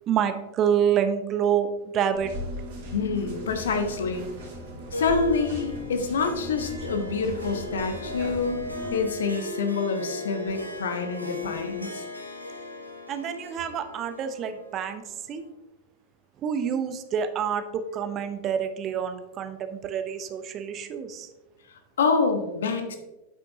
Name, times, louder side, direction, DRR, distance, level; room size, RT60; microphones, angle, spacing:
voice 1, 0.1-1.7 1.9-2.3 13.1-15.4 16.4-21.3, right 8 dB, 30° right, 9 dB, 0.7 m, -27 dB
sound 1, 2.1-9.1, equal, 50° right, 2.5 m, -38 dB
voice 2, 2.9-4.3 4.9-8.6 8.9-12.0 21.7-23.0, left 4 dB, 65° left, 6 dB, 1.0 m, -27 dB
Harp, 4.9-15.5, left 3 dB, 90° left, 1.1 m, -38 dB
8.9 x 7.9 x 2.8 m, 1.1 s
figure-of-eight pair, 90°, 0 cm